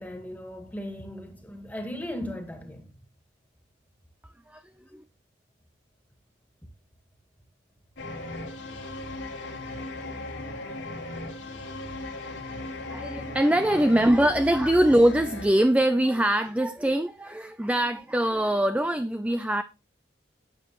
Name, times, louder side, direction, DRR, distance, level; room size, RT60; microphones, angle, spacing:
voice 1, 0.0-2.9, left 1 dB, 10° left, 2.1 m, -37 dB
sound 1, 8.0-15.5, left 2 dB, 85° left, 2.9 m, -37 dB
voice 2, 12.9-19.6, right 1 dB, 5° right, 0.5 m, -23 dB
12.5 x 8.9 x 3.1 m
head